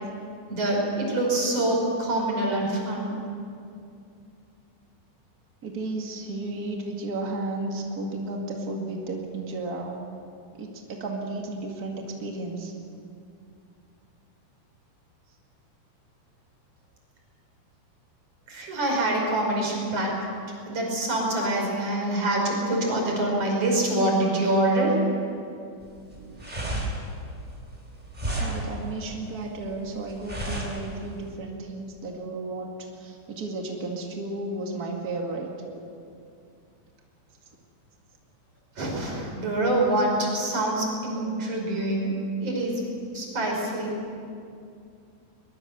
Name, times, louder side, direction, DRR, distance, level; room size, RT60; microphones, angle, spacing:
voice 1, 0.5-3.1 18.5-20.1 20.7-25.0 38.8-42.8 43.1-43.9, right 1 dB, 30° right, -1 dB, 5.6 m, -25 dB
voice 2, 5.6-10.0 10.5-12.7 28.2-32.7 33.0-35.5, right 2 dB, 80° right, 0 dB, 0.8 m, -33 dB
sound 1, 25.8-31.3, right 1 dB, 10° right, 3.0 m, -33 dB
22.5 x 21.5 x 6.8 m, 2.4 s
omnidirectional pair, 5.7 m